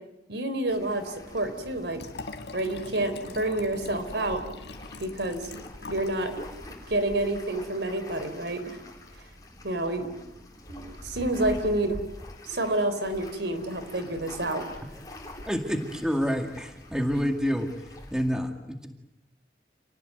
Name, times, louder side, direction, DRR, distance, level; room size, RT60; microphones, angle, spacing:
voice 1, 0.3-2.0 2.5-4.4 5.0-5.5 5.9-6.3 6.9-8.8 9.6-10.1 10.7-12.0 12.5-14.6, right 1 dB, 80° right, 9 dB, 3.8 m, -28 dB
sound 1, 0.7-18.3, left 1 dB, 20° left, 4.3 m, -45 dB
Liquid, 2.0-6.2 6.5-6.6, left 3 dB, 80° left, 1.7 m, -42 dB
voice 2, 15.5-18.9, equal, 5° right, 4 dB, 2.2 m, -28 dB
29.0 x 18.5 x 9.3 m, 0.92 s
head